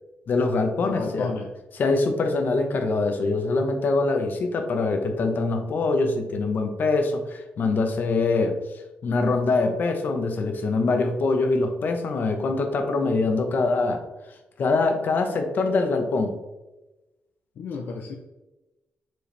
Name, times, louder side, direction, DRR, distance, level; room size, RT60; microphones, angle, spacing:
voice 1, 0.3-1.3 1.8-8.6 9.0-14.0 14.6-16.4, left 3 dB, 55° left, 5 dB, 1.0 m, -24 dB
voice 2, 0.8-1.5 17.6-18.1, left 4 dB, 75° left, 2 dB, 0.7 m, -32 dB
7.7 x 4.8 x 3.4 m, 1.0 s
cardioid pair, 135°, 4 cm